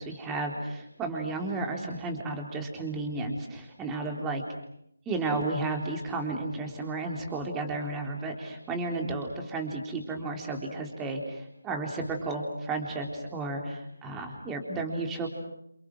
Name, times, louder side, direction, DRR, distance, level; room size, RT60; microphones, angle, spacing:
voice 1, 0.0-4.4 5.1-15.3, right 3 dB, 10° right, 2 dB, 3.8 m, -33 dB
29.0 x 28.0 x 6.3 m, 0.75 s
figure-of-eight pair, 165°, 0 cm